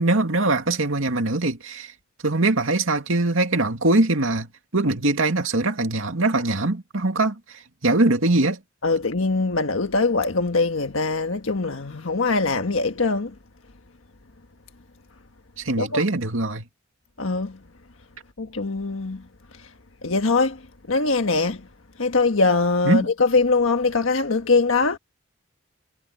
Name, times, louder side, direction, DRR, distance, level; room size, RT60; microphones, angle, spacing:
voice 1, 0.0-1.9 2.2-4.5 4.7-7.4 7.8-8.6 15.6-16.7 22.9-23.1, right 2 dB, 80° right, 2.4 m, -22 dB
voice 2, 8.8-13.3 15.8-16.0 17.2-17.6 18.4-19.3 19.5-19.7 20.0-21.7 22.0-25.0, left 3 dB, 80° left, 1.5 m, -22 dB
head